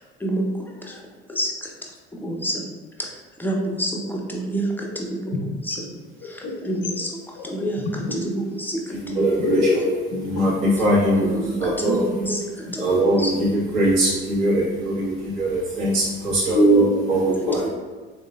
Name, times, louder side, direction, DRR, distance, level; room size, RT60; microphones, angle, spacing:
voice 1, 2.2-2.6 3.4-4.9 5.2-5.3 5.7-5.8 6.6-7.1 7.4-8.3 8.6-8.8 9.1-9.2 11.3-12.4 12.7-12.8 13.2-13.3, right 1 dB, 5° left, -1 dB, 0.6 m, -26 dB
voice 2, 5.9-6.6 7.4-7.5 8.1-8.2 9.4-10.2 12.7-12.8 13.4-13.5 16.5-17.0 17.4-17.5, equal, 50° left, 2 dB, 0.7 m, -21 dB
voice 3, 8.9-9.9 10.2-12.3 12.8-17.7, right 1 dB, 65° right, -8 dB, 1.4 m, -22 dB
3.6 x 2.9 x 2.3 m, 1.4 s
figure-of-eight pair, 60°, 32 cm